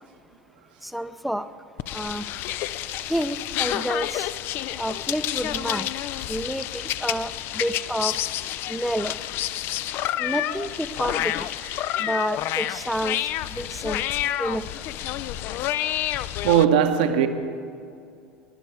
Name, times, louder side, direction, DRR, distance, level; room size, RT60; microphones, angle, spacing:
voice 1, 0.8-1.5 1.9-2.2 3.1-4.3 4.8-5.9 6.3-8.1 8.7-9.2 10.2-11.5 12.0-13.2 13.5-14.0 14.4-14.6, equal, ahead, 0.6 m, -29 dB
sound 1, 1.8-16.6, left 13 dB, 45° left, 0.5 m, -29 dB
voice 2, 16.4-17.3, right 9 dB, 65° right, 1.1 m, -18 dB
22.5 x 11.5 x 4.8 m
figure-of-eight pair, 75°, 5 cm